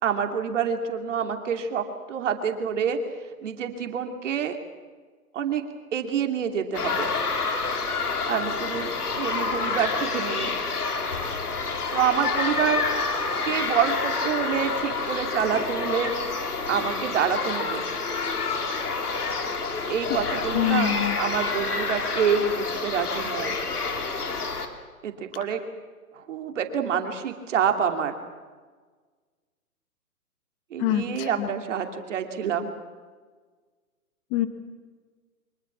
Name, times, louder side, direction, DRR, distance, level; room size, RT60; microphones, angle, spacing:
voice 1, 0.0-3.0 3.4-4.6 5.3-5.6 5.9-7.1 8.3-10.5 11.9-12.8 13.5-16.1 16.7-17.8 19.9-23.5 25.0-25.6 26.1-28.1 30.7-32.7, right 7 dB, 55° right, 6 dB, 2.8 m, -27 dB
sound 1, 6.7-24.7, left 4 dB, 90° left, 3.4 m, -28 dB
voice 2, 20.5-21.2 30.8-31.5 34.3-34.5, left 12 dB, 25° left, 12 dB, 1.2 m, -25 dB
25.0 x 21.5 x 7.4 m, 1.5 s
hypercardioid pair, 145°, 44 cm